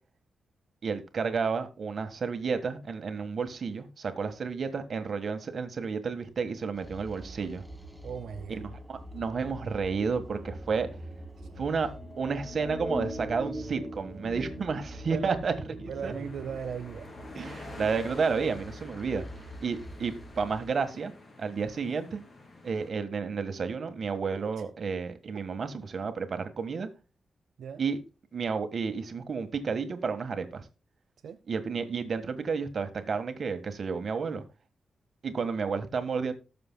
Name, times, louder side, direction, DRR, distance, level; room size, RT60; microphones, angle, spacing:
voice 1, 0.8-7.6 8.5-10.9 11.6-11.9 12.2-15.5 15.8-16.1 17.3-19.3 19.6-21.1 21.4-22.2 22.6-26.9 27.8-28.0 28.3-30.6 31.5-34.4 35.2-36.3, right 5 dB, 55° right, 1.4 m, -31 dB
sound 1, 6.7-20.6, equal, 5° right, 1.6 m, -42 dB
voice 2, 8.0-8.6 15.1-15.4 15.9-17.1 24.5-24.6 27.6-27.8 31.2-31.4, right 7 dB, 85° right, 0.7 m, -37 dB
sound 2, 16.0-22.9, left 2 dB, 40° left, 2.8 m, -47 dB
19.0 x 6.8 x 2.2 m
wide cardioid pair, 110°, 0 cm